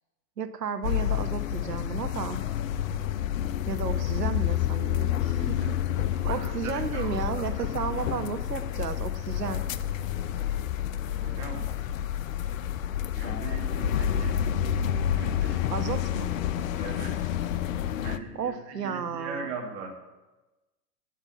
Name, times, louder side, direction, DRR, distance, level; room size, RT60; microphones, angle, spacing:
voice 1, 0.4-2.4 3.7-5.4 5.7-5.8 6.1-9.6 15.7-16.3 18.4-19.5, right 6 dB, 75° right, 10 dB, 1.0 m, -33 dB
sound 1, 0.8-18.2, left 10 dB, 55° left, 0.7 m, -29 dB
voice 2, 5.4-5.7 6.2-7.7 11.2-11.7 13.1-14.4 15.1-15.9 16.8-17.2 18.0-20.0, right 4 dB, 40° right, 2 dB, 2.3 m, -40 dB
8.7 x 8.5 x 7.1 m, 1.1 s
figure-of-eight pair, 90°, 48 cm